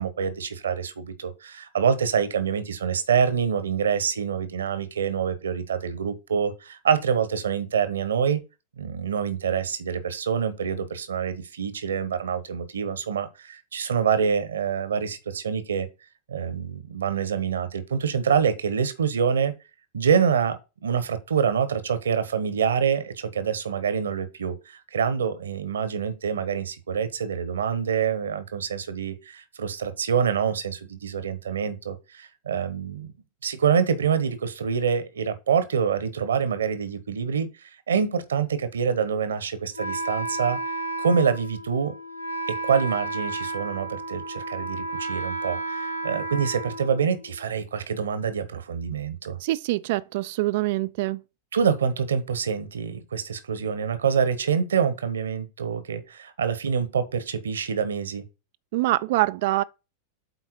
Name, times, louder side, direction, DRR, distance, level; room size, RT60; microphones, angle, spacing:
voice 1, 0.0-8.4 8.8-15.9 16.3-19.5 19.9-33.1 33.4-40.6 41.0-41.9 42.5-49.4 51.5-58.2, right 7 dB, 70° right, 1.0 m, -26 dB
Wind instrument woodwind instrument, 39.8-47.5, right 2 dB, 85° left, 0.8 m, -32 dB
voice 2, 49.4-51.2 58.7-59.6, right 18 dB, 50° right, 0.3 m, -24 dB
8.2 x 4.2 x 4.5 m
figure-of-eight pair, 90°, 0 cm